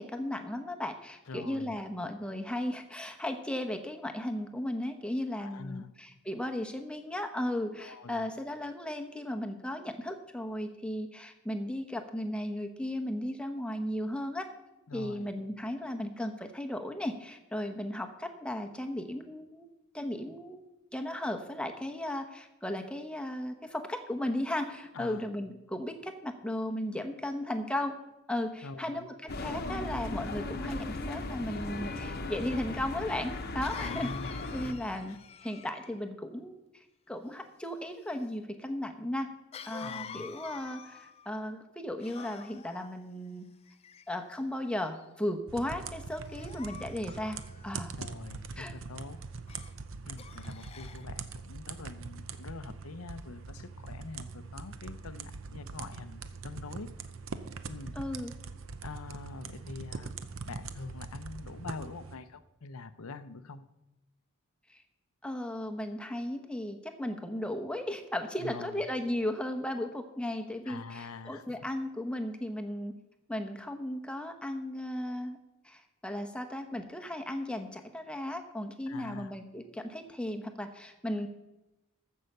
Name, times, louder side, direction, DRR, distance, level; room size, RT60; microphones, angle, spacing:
voice 1, 0.0-14.5 14.9-19.7 19.9-20.6 20.9-28.0 28.3-34.1 34.5-35.2 35.4-39.3 39.6-43.5 44.1-47.4 47.6-47.9 48.6-48.7 58.0-58.3 64.7-64.8 65.2-72.9 73.3-75.4 75.6-81.3, left 1 dB, 5° left, 5 dB, 0.8 m, -36 dB
voice 2, 1.3-1.8 5.4-5.9 7.8-8.3 14.9-15.3 24.9-25.3 28.6-29.1 33.7-34.4 35.1-35.2 39.8-40.3 48.0-49.2 50.0-56.9 57.7-58.0 58.8-60.1 60.5-63.7 68.4-68.8 70.7-71.4 78.9-79.3, left 4 dB, 90° left, 12 dB, 0.7 m, -44 dB
sound 1, 29.3-34.7, left 2 dB, 45° left, 0.9 m, -37 dB
Cough, 32.5-32.6 33.6-36.0 39.5-41.3 42.0-42.9 43.7-44.3 44.9-45.2 46.2-47.8 49.5-49.7 50.2-51.1, left 7 dB, 30° left, 0.4 m, -47 dB
sound 2, 45.5-62.1, right 4 dB, 70° right, 0.7 m, -43 dB
14.5 x 5.6 x 6.6 m, 0.97 s
head